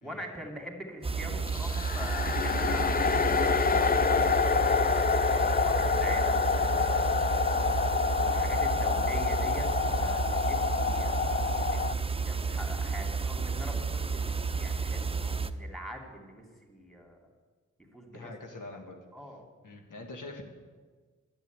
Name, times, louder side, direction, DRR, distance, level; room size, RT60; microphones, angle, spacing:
voice 1, 0.0-5.1 5.4-7.3 8.1-17.2 17.9-18.3 18.7-18.8 19.1-19.4, equal, ahead, 2 dB, 2.7 m, -43 dB
sound 1, 1.0-15.5, right 4 dB, 20° right, 0.6 m, -31 dB
sound 2, 1.5-11.9, left 6 dB, 30° left, 0.4 m, -27 dB
voice 2, 18.1-19.0 19.6-20.4, left 2 dB, 90° left, 3 dB, 1.9 m, -44 dB
10.5 x 8.3 x 9.3 m, 1.4 s
cardioid pair, 70°, 31 cm